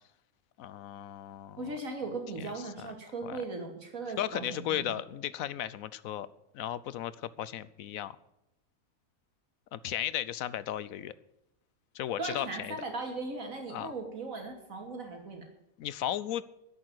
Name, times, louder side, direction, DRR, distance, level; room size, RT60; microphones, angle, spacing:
voice 1, 0.6-1.7 2.4-2.5 2.8-2.9 3.2-3.4 4.2-6.3 6.5-8.2 9.7-11.1 11.9-12.8 13.7-13.9 15.8-16.4, left 11 dB, 80° left, 17 dB, 1.1 m, -35 dB
voice 2, 1.6-4.9 12.2-15.5, right 3 dB, 70° right, 3 dB, 3.0 m, -38 dB
11.0 x 8.5 x 9.5 m, 0.86 s
omnidirectional pair, 1.5 m